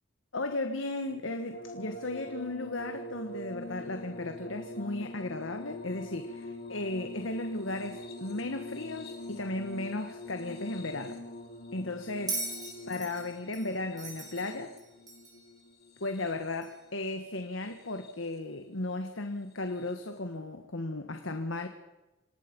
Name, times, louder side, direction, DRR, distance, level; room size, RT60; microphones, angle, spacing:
voice 1, 0.3-11.2 11.7-12.4 12.9-14.7 16.0-21.7, left 2 dB, 80° left, 1.5 m, -35 dB
sound 1, 1.5-16.8 17.6-18.3 19.8-19.9, left 1 dB, 50° left, 3.1 m, -44 dB
Bell, 12.3-15.5 16.6-16.7, right 3 dB, 20° right, 4.8 m, -39 dB
27.0 x 18.5 x 5.4 m
head